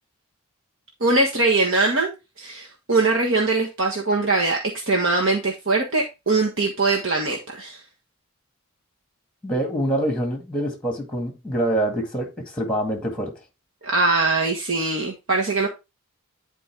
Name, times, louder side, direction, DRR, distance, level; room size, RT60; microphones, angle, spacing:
voice 1, 1.0-7.8 13.8-15.7, right 3 dB, 55° right, 1.5 m, -22 dB
voice 2, 9.4-13.3, right 1 dB, 5° left, 2.0 m, -25 dB
11.0 x 4.6 x 3.5 m
head